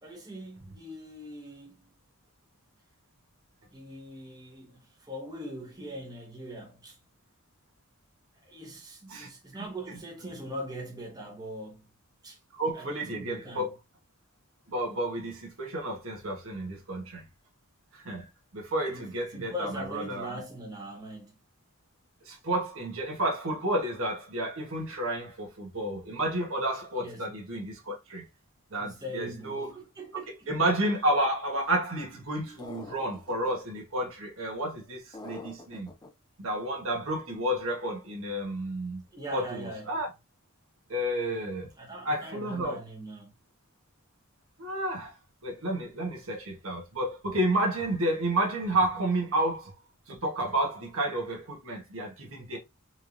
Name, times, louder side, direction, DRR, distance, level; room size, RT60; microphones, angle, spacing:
voice 1, 0.0-1.9 3.7-7.0 8.4-11.9 12.2-12.4 12.7-13.7 18.9-19.1 19.3-21.4 27.0-27.4 28.7-30.5 39.1-40.0 41.8-43.3, equal, 15° right, 1.1 m, -41 dB
voice 2, 9.1-9.6 12.5-13.7 14.7-17.2 17.9-18.2 18.5-20.4 22.3-28.2 28.7-29.7 30.5-35.9 36.4-39.0 39.3-40.1 40.9-41.7 42.0-42.8 44.6-45.1 45.4-49.7 50.1-52.6, right 1 dB, 65° right, 1.3 m, -31 dB
sound 1, 32.6-33.5 35.1-36.1, left 2 dB, 20° left, 0.5 m, -45 dB
4.3 x 3.2 x 2.6 m
head